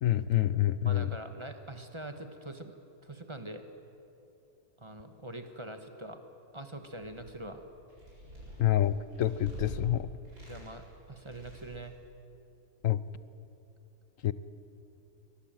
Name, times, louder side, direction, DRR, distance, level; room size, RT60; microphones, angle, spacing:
voice 1, 0.0-1.1 8.6-10.1 12.8-13.0 14.2-14.3, left 12 dB, 65° left, 16 dB, 1.0 m, -27 dB
voice 2, 0.8-3.6 4.8-6.2 6.5-7.6 10.4-11.9, right 1 dB, 20° right, 7 dB, 1.4 m, -44 dB
sound 1, 6.8-7.5 7.9-9.8 10.3-10.9 11.2-11.9, equal, 65° right, 7.7 m, -47 dB
24.0 x 19.5 x 9.1 m, 2.8 s
omnidirectional pair, 1.6 m